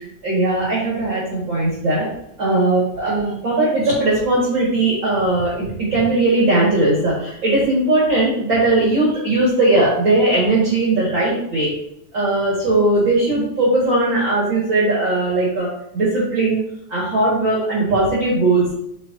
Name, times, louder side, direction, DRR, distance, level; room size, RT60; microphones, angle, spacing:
voice 1, 0.2-2.1 2.4-11.7 12.1-15.7 15.9-16.6 16.9-18.7, right 2 dB, 40° right, -6 dB, 2.1 m, -18 dB
7.5 x 6.7 x 2.7 m, 0.78 s
omnidirectional pair, 3.7 m